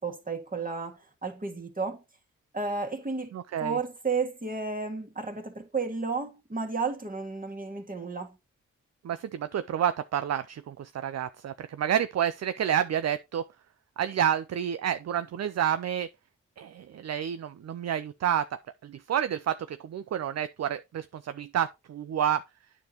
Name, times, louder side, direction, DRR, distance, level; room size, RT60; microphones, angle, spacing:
voice 1, 0.0-2.0 2.5-3.3 3.6-8.4, right 4 dB, 25° right, 2.0 m, -32 dB
voice 2, 3.3-3.8 9.0-13.4 14.0-16.1 16.6-18.4 18.8-22.4, right 9 dB, 50° right, 0.5 m, -29 dB
9.2 x 4.9 x 2.9 m
supercardioid pair, 40°, 33 cm